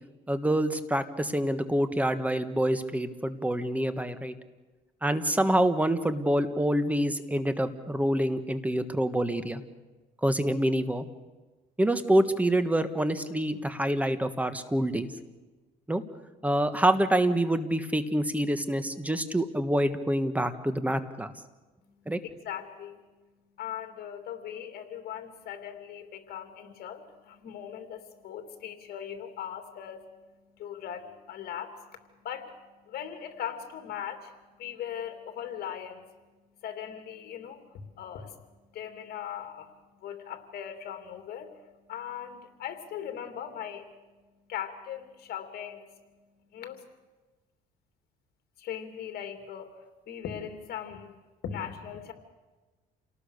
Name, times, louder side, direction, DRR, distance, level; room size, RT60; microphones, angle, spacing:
voice 1, 0.3-4.3 5.0-9.6 10.2-11.0 11.8-15.1 15.9-16.0 16.4-21.3 22.1-22.2, right 1 dB, 10° right, 10 dB, 1.5 m, -26 dB
voice 2, 21.8-23.0 23.6-36.0 36.6-38.4 38.7-39.7 40.0-43.9 44.5-45.9 46.5-46.8 48.6-51.1 51.4-52.1, left 9 dB, 65° left, 6 dB, 3.0 m, -39 dB
28.5 x 18.5 x 6.7 m, 1.2 s
cardioid pair, 110°, 17 cm